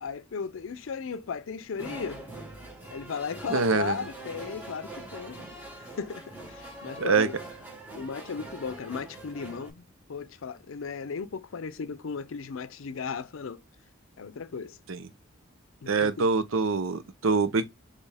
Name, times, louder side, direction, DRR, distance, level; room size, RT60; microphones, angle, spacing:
voice 1, 0.0-2.2 2.9-5.4 5.8-7.3 7.9-13.6 14.2-14.8 15.8-16.3, left 5 dB, 80° left, 0.5 m, -36 dB
sound 1, 1.8-9.7, right 1 dB, 10° right, 1.3 m, -43 dB
voice 2, 3.5-4.0 7.0-7.3 14.9-15.1 15.9-17.7, right 4 dB, 85° right, 0.6 m, -25 dB
4.4 x 3.2 x 3.4 m
head